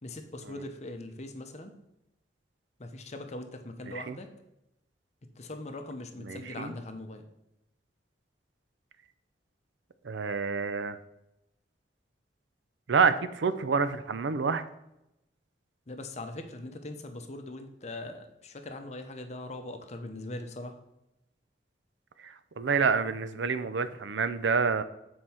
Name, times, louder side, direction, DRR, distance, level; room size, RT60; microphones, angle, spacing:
voice 1, 0.0-1.7 2.8-4.3 5.2-7.3 15.9-20.8, left 2 dB, 40° left, 6 dB, 0.8 m, -41 dB
voice 2, 6.3-6.7 10.0-11.0 12.9-14.6 22.2-24.8, right 5 dB, 80° right, 12 dB, 0.5 m, -28 dB
7.4 x 4.7 x 4.3 m, 0.87 s
head